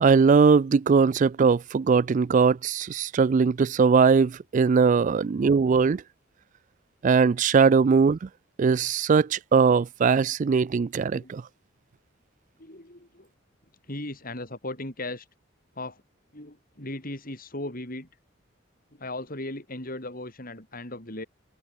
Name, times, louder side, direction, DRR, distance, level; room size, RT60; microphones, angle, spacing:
voice 1, 0.0-6.0 7.0-8.3 8.6-11.4, right 5 dB, 40° right, 0.3 m, -20 dB
voice 2, 12.6-13.3 13.8-15.3 15.7-16.0 16.3-18.1 18.9-21.3, left 1 dB, 45° left, 8.0 m, -37 dB
head